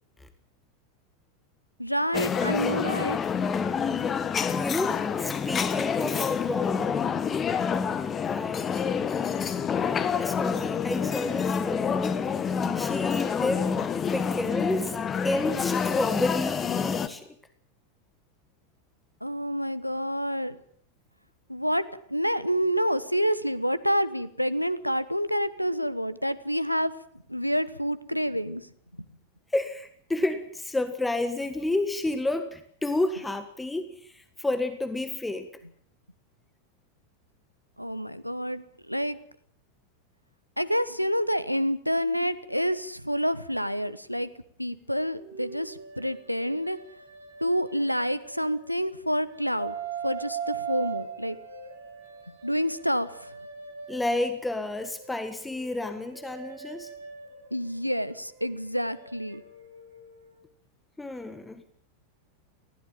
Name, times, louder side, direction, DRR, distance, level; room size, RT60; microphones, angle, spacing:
voice 1, 1.8-3.2 19.2-20.6 21.5-26.9 27.3-29.1 37.8-39.2 40.6-44.3 44.6-46.8 47.4-49.7 50.0-51.4 52.3-53.4 57.5-59.4, equal, 90° left, 16 dB, 1.2 m, -28 dB
sound 1, 2.1-17.1, left 6 dB, 25° left, 1.4 m, -27 dB
voice 2, 4.5-7.0 8.2-8.8 10.2-12.2 12.7-13.7 14.1-17.3 29.5-35.5 53.9-56.9 61.0-61.6, left 2 dB, 10° left, 10 dB, 1.6 m, -30 dB
sound 2, 45.2-48.7 49.2-54.4 54.8-60.4, right 7 dB, 65° right, 4.1 m, -41 dB
19.5 x 16.0 x 9.2 m, 0.63 s
figure-of-eight pair, 90°, 0 cm